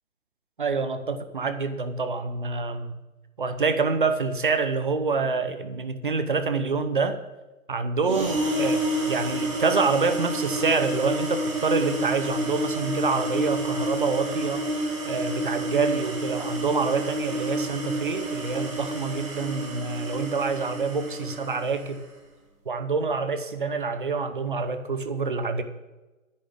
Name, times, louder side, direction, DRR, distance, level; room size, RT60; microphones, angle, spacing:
voice 1, 0.6-2.9 3.4-7.2 7.7-14.7 15.0-22.0 22.7-25.6, right 4 dB, 40° right, 10 dB, 0.8 m, -26 dB
sound 1, 8.0-22.0, right 1 dB, 20° right, 1.8 m, -29 dB
9.9 x 6.8 x 8.1 m, 1.1 s
hypercardioid pair, 165°, 41 cm